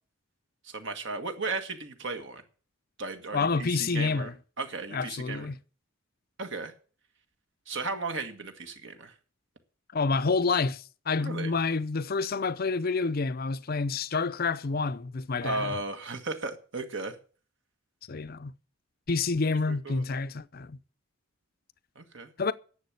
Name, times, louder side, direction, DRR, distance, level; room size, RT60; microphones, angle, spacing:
voice 1, 0.6-2.4 3.0-4.3 4.6-5.5 6.4-6.7 7.7-9.1 11.2-11.5 15.4-17.2 19.7-20.0 22.0-22.3, right 3 dB, 60° right, 1.6 m, -35 dB
voice 2, 3.3-4.3 4.9-5.6 9.9-15.8 18.1-18.5 19.1-20.8 22.4-22.5, left 4 dB, 45° left, 0.6 m, -28 dB
11.0 x 7.2 x 9.6 m
head